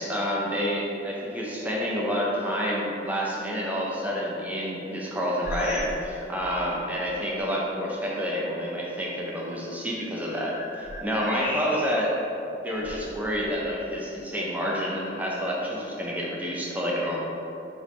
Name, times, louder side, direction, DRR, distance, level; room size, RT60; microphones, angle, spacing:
voice 1, 0.0-12.2 12.6-17.2, equal, 10° right, -4 dB, 0.6 m, -29 dB
sound 1, 5.4-6.1 6.4-6.7 7.4-7.5 9.9-12.2 12.7-13.8, left 1 dB, 55° left, 0.8 m, -37 dB
4.9 x 3.3 x 3.2 m, 2.8 s
head